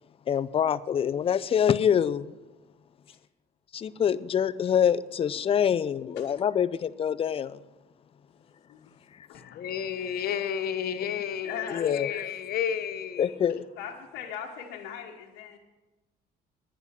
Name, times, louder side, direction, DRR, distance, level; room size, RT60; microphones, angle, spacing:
voice 1, 0.3-2.3 3.7-7.6 11.7-12.1 13.2-13.6, left 8 dB, 35° left, 0.4 m, -25 dB
voice 2, 8.4-8.9 9.3-9.4 11.4-11.9 13.8-15.6, left 8 dB, 85° left, 1.2 m, -40 dB
voice 3, 9.3-13.3, left 8 dB, 65° left, 1.0 m, -31 dB
11.0 x 9.8 x 5.8 m
cardioid pair, 110°, 17 cm